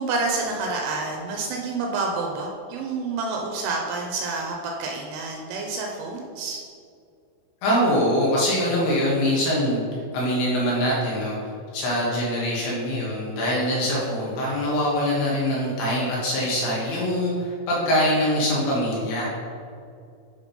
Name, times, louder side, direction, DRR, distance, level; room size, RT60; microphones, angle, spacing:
voice 1, 0.0-6.6, right 3 dB, 80° right, 1 dB, 2.9 m, -28 dB
voice 2, 7.6-9.8 10.1-11.4 11.7-19.3, equal, 70° left, -5 dB, 3.0 m, -23 dB
8.9 x 3.3 x 5.2 m, 2.4 s
omnidirectional pair, 5.8 m